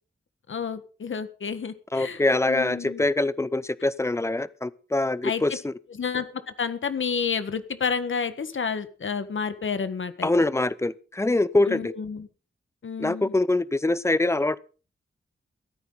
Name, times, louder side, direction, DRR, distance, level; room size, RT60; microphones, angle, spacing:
voice 1, 0.5-2.2 2.5-3.0 5.2-5.4 6.0-6.3 6.6-10.3 11.7-12.3 12.8-13.3, left 6 dB, 70° left, 11 dB, 1.6 m, -30 dB
voice 2, 1.9-5.7 10.2-11.9 13.0-14.6, left 2 dB, 15° left, 19 dB, 0.6 m, -24 dB
17.0 x 13.5 x 4.0 m, 0.37 s
wide cardioid pair, 135°, 21 cm